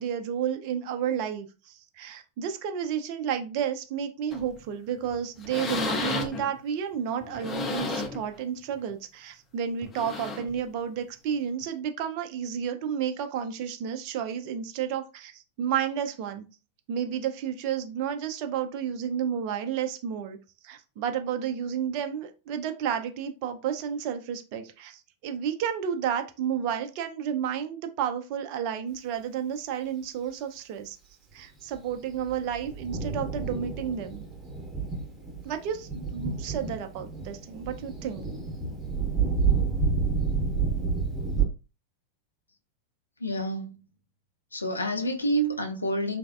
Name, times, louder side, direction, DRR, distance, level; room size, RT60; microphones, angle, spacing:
voice 1, 0.0-16.4 16.9-20.4 20.6-31.0 31.3-34.2 35.4-38.2, right 8 dB, 45° right, 0.4 m, -31 dB
sound 1, 4.3-4.6 5.0-5.2 5.4-6.5 7.2-8.3 8.7-8.9 9.8-10.6 11.6-11.7, left 3 dB, 20° left, 0.6 m, -33 dB
Thunder, 31.7-41.5, right 5 dB, 20° right, 0.8 m, -29 dB
voice 2, 43.2-43.8 44.5-46.2, right 1 dB, 80° left, 0.4 m, -28 dB
3.2 x 2.0 x 2.4 m
figure-of-eight pair, 90°, 0 cm